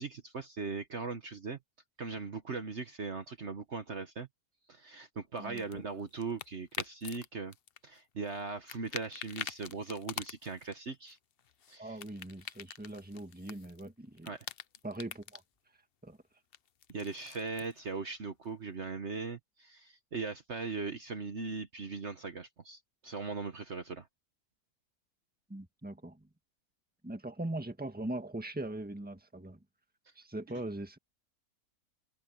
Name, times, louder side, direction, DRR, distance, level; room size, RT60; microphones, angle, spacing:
voice 1, 0.0-1.6 2.0-4.3 4.7-7.5 7.8-11.2 11.7-12.0 14.2-14.5 16.9-24.1, right 4 dB, 50° right, 1.5 m, -39 dB
sound 1, 5.4-7.3 7.5-8.4 8.7-10.7 11.1-13.9 14.2-15.4 16.5-17.8, left 9 dB, 55° left, 0.7 m, -44 dB
voice 2, 5.4-5.8 11.8-14.3 14.8-15.4 16.0-16.2 25.5-26.3 27.0-29.6 30.2-31.0, right 1 dB, 5° right, 1.7 m, -41 dB
omnidirectional pair, 1.6 m